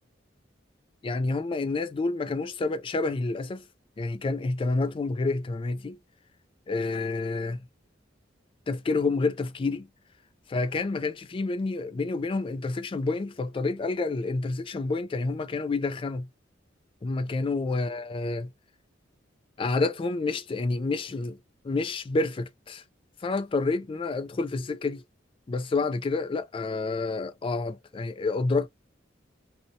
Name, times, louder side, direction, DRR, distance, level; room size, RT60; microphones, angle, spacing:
voice 1, 1.0-3.6 4.0-6.0 6.7-7.6 8.7-9.9 10.5-16.3 17.0-18.5 19.6-21.4 21.6-22.8 23.2-25.0 25.5-28.7, left 3 dB, 30° left, 0.3 m, -29 dB
2.6 x 2.1 x 2.5 m
head